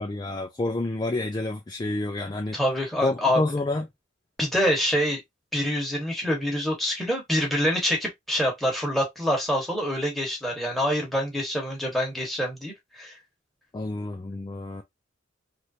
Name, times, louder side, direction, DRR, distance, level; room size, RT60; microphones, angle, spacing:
voice 1, 0.0-2.6 3.0-3.9 13.7-14.8, left 2 dB, 20° left, 0.3 m, -29 dB
voice 2, 2.5-3.4 4.4-5.2 5.5-13.2, equal, ahead, 1.1 m, -26 dB
3.1 x 2.5 x 2.7 m
head